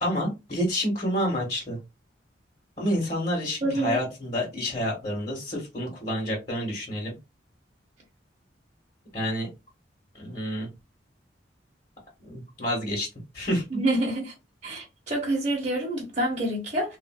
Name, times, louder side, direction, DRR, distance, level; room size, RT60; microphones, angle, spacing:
voice 1, 0.0-1.8 2.8-7.1 9.1-9.5 10.1-10.7 12.2-13.1 13.3-13.8, equal, 35° left, 1.2 m, -28 dB
voice 2, 3.6-4.0 13.7-14.3 14.6-17.0, right 1 dB, 40° right, 1.0 m, -27 dB
3.4 x 2.5 x 2.3 m
head